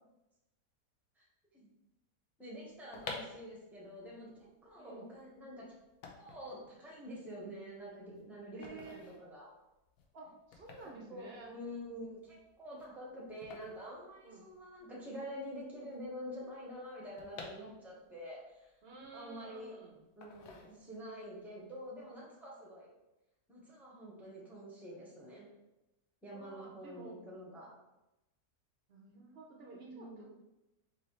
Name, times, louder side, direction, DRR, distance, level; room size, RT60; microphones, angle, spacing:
voice 1, 2.4-5.7 6.2-9.5 11.1-18.7 19.1-19.8 20.2-22.9 23.5-25.5 26.2-27.7 29.9-30.3, equal, ahead, -4 dB, 0.8 m, -47 dB
sound 1, 2.7-14.8 15.1-15.2 15.3-18.2 18.6-19.7 20.2-21.2 21.6-21.8, left 4 dB, 80° left, 1.2 m, -51 dB
voice 2, 4.7-5.2 8.5-9.0 10.1-11.5 14.2-14.5 15.2-15.4 18.8-20.0 26.3-27.4 28.9-30.3, right 3 dB, 50° right, -1 dB, 0.8 m, -52 dB
5.2 x 3.1 x 3.1 m, 0.96 s
omnidirectional pair, 1.6 m